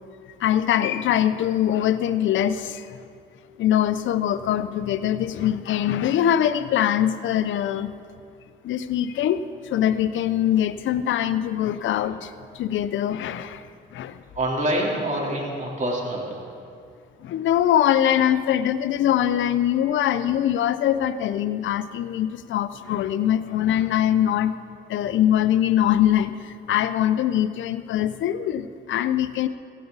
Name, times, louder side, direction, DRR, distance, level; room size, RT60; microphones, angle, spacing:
voice 1, 0.4-3.0 3.6-7.9 8.6-9.4 9.7-13.7 13.9-14.2 17.2-24.5 24.9-26.4 26.7-29.5, left 11 dB, 75° left, 13 dB, 0.7 m, -22 dB
voice 2, 14.3-16.4, right 1 dB, 40° right, -2 dB, 3.6 m, -26 dB
17.0 x 16.0 x 4.0 m, 2.4 s
cardioid pair, 90°, 20 cm